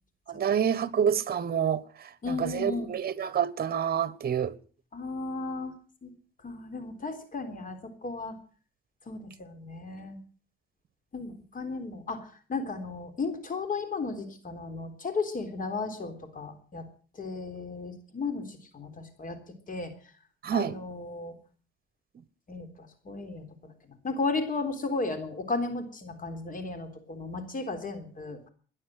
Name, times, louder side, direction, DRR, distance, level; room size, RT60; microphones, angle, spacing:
voice 1, 0.3-4.5 20.4-20.8, right 8 dB, 50° right, 1.3 m, -28 dB
voice 2, 2.2-2.9 4.9-5.7 6.0-6.1 6.4-8.4 9.1-10.2 11.1-16.8 17.2-19.4 19.7-19.9 20.5-21.3 22.5-22.7 23.1-23.7 24.0-28.5, left 3 dB, 45° left, 3.6 m, -34 dB
17.0 x 10.5 x 7.7 m
cardioid pair, 90°, 20 cm